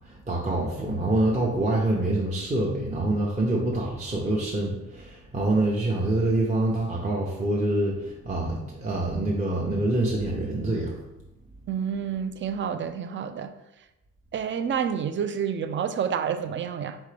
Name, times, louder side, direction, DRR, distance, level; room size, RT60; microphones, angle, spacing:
voice 1, 0.1-10.9, right 2 dB, 25° right, 0.8 m, -26 dB
voice 2, 11.7-13.5 14.3-17.0, right 7 dB, 40° right, 0.4 m, -29 dB
4.2 x 3.5 x 3.3 m
cardioid pair, 90°, 30 cm